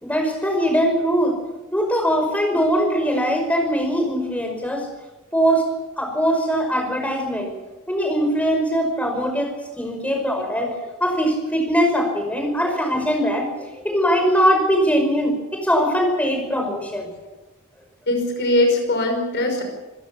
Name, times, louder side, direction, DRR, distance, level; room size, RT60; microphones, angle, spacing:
voice 1, 0.0-1.3 1.7-4.9 5.3-5.6 6.0-7.5 7.9-10.7 11.0-17.1, equal, 5° left, 4 dB, 5.6 m, -21 dB
voice 2, 18.1-19.6, left 1 dB, 50° left, 4 dB, 5.7 m, -21 dB
27.5 x 16.0 x 7.2 m, 1.1 s
head